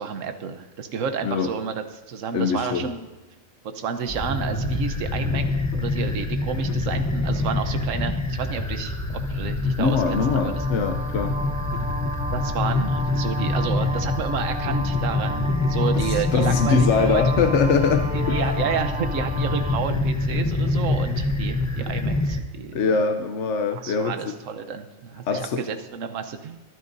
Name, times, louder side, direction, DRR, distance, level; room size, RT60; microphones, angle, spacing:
voice 1, 0.0-3.1 3.6-9.0 9.3-10.6 12.3-17.2 18.1-23.0 23.7-26.6, right 6 dB, 65° right, 8 dB, 1.3 m, -30 dB
voice 2, 2.3-2.9 9.8-11.4 15.9-18.4 22.7-24.3 25.3-25.6, left 5 dB, 60° left, 6 dB, 1.0 m, -22 dB
sound 1, 4.0-22.4, left 2 dB, 15° left, 0.9 m, -25 dB
sound 2, 9.9-19.8, right 1 dB, 10° right, 0.5 m, -34 dB
sound 3, 18.0-19.7, left 3 dB, 40° right, 1.5 m, -36 dB
24.0 x 11.0 x 2.7 m, 1.1 s
omnidirectional pair, 1.4 m